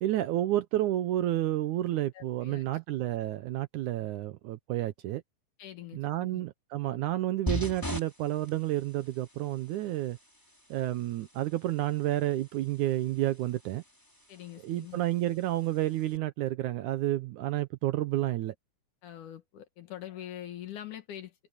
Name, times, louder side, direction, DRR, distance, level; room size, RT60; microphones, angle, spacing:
voice 1, 0.0-5.2 5.9-10.2 10.7-13.8 14.6-18.6, right 14 dB, 75° right, 2.0 m, -30 dB
voice 2, 2.1-2.6 5.6-6.4 14.3-15.0 19.0-21.3, left 11 dB, 65° left, 3.1 m, -44 dB
sound 1, 7.5-16.2, equal, 5° left, 4.5 m, -42 dB
omnidirectional pair, 4.0 m